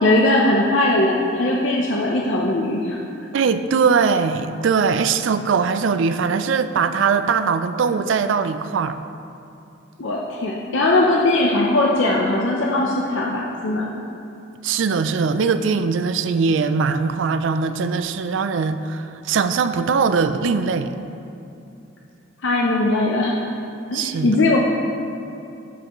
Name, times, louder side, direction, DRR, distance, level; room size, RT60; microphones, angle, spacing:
voice 1, 0.0-3.0 10.0-13.9 22.4-23.3 23.9-24.6, left 2 dB, 65° left, -2 dB, 0.6 m, -19 dB
voice 2, 3.3-9.0 14.6-20.9 23.9-24.4, right 5 dB, 70° right, 11 dB, 0.4 m, -21 dB
12.0 x 5.8 x 3.1 m, 2.8 s
head